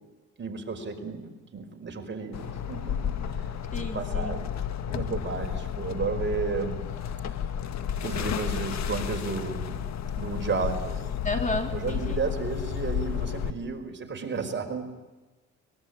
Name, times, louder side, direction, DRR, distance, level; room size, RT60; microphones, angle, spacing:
voice 1, 0.4-4.5 4.8-6.8 8.0-9.8 10.2-11.1 11.7-14.8, right 4 dB, 40° right, 3 dB, 5.1 m, -33 dB
sound 1, 2.3-13.5, left 8 dB, 65° left, 1.7 m, -32 dB
voice 2, 3.7-4.3 11.2-12.2, left 2 dB, 25° left, 4 dB, 3.8 m, -32 dB
23.5 x 22.0 x 8.9 m, 1.2 s
cardioid pair, 90°, 30 cm